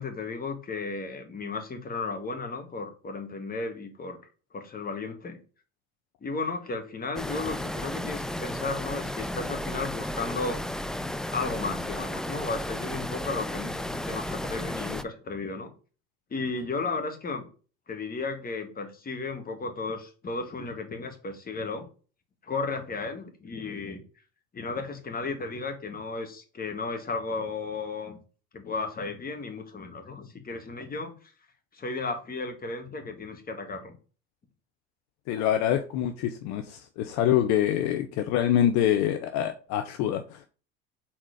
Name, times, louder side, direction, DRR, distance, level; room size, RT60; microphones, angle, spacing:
voice 1, 0.0-4.2 4.5-5.4 6.2-10.6 11.3-15.7 16.3-17.5 17.9-21.9 22.4-24.0 24.5-28.2 28.5-31.1 31.7-34.0, left 3 dB, 30° left, 1.9 m, -34 dB
sound 1, 7.2-15.0, left 1 dB, ahead, 0.4 m, -33 dB
voice 2, 35.3-40.4, left 10 dB, 65° left, 0.7 m, -25 dB
4.3 x 4.3 x 5.2 m
hypercardioid pair, 75°, 30 cm